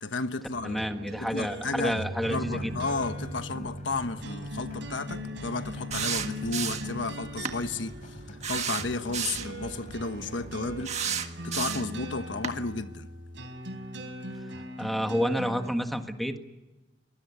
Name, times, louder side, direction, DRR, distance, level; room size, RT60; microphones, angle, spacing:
voice 1, 0.0-0.8 1.2-2.0 2.3-10.9 11.4-13.1, left 3 dB, 90° left, 1.2 m, -33 dB
sound 1, 0.5-15.8, equal, 80° right, 3.8 m, -40 dB
voice 2, 0.6-2.7 3.5-3.7 14.8-16.4, equal, ahead, 1.6 m, -29 dB
sound 2, 2.3-10.8, equal, 40° left, 4.4 m, -45 dB
sound 3, 5.9-7.0 7.4-7.6 8.4-9.5 10.8-12.0 12.4-12.6, right 7 dB, 35° right, 1.7 m, -31 dB
24.0 x 20.0 x 8.4 m
head